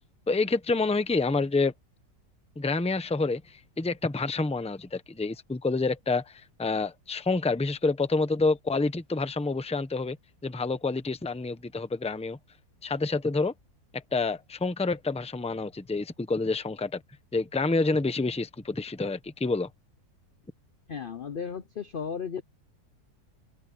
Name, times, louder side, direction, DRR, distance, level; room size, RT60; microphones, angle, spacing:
voice 1, 0.3-1.7 2.6-10.2 10.4-12.4 12.8-13.5 13.9-17.0 17.3-19.7, left 3 dB, 5° left, 0.7 m, -28 dB
voice 2, 20.9-22.4, left 6 dB, 50° left, 0.7 m, -35 dB
omnidirectional pair, 1.6 m